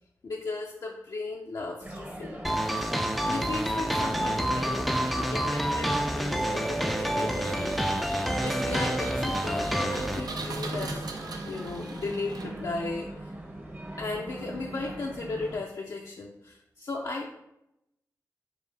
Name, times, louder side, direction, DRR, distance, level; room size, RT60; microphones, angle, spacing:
voice 1, 0.2-2.6 3.2-11.0 11.5-13.3 14.0-17.3, left 3 dB, 65° left, -2 dB, 0.4 m, -36 dB
sound 1, 1.8-15.6, right 1 dB, 30° right, 0.8 m, -40 dB
sound 2, 2.4-10.2, equal, ahead, 0.3 m, -28 dB
Engine, 7.2-12.9, right 3 dB, 75° right, 0.5 m, -41 dB
4.6 x 2.5 x 3.3 m, 0.84 s
wide cardioid pair, 65°, 7 cm